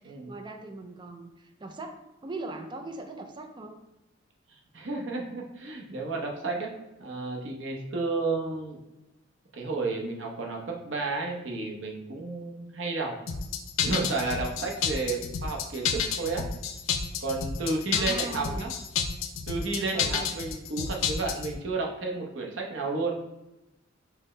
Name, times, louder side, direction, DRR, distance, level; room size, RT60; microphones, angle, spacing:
voice 1, 0.0-3.8 17.9-18.7 19.9-20.3, right 2 dB, 25° right, 6 dB, 0.4 m, -40 dB
voice 2, 4.7-6.7 7.0-8.8 9.5-13.1 13.8-16.5 17.2-18.7 19.5-23.1, right 3 dB, 65° right, 0 dB, 0.7 m, -32 dB
sound 1, 13.3-21.5, left 6 dB, 80° left, 0.4 m, -30 dB
5.7 x 2.1 x 3.1 m, 0.96 s
head